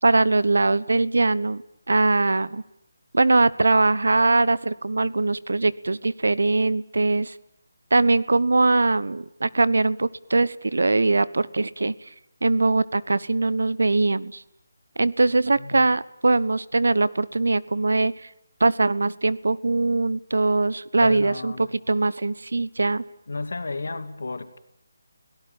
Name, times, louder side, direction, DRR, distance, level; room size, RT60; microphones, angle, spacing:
voice 1, 0.0-1.6 1.9-2.6 3.1-7.3 7.9-11.9 12.4-14.4 15.0-18.1 18.6-23.0, right 3 dB, 85° right, 18 dB, 1.1 m, -21 dB
voice 2, 15.5-15.9 21.0-21.7 23.3-24.6, left 3 dB, 80° left, 10 dB, 2.7 m, -33 dB
29.5 x 17.5 x 9.0 m, 0.79 s
hypercardioid pair, 170°, 0 cm